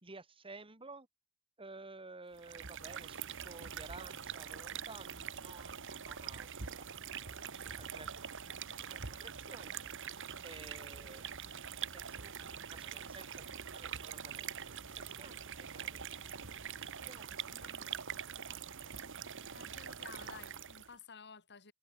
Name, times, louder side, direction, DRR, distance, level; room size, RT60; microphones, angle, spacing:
voice 1, 0.0-1.1 1.6-6.9 7.2-8.1 8.9-11.2 11.9-16.3 17.1-17.5, right 3 dB, 25° right, 2.4 m, -54 dB
sound 1, 2.3-21.0, right 8 dB, 60° right, 2.0 m, -44 dB
voice 2, 17.5-18.1 19.5-21.7, left 5 dB, 50° left, 6.4 m, -54 dB
head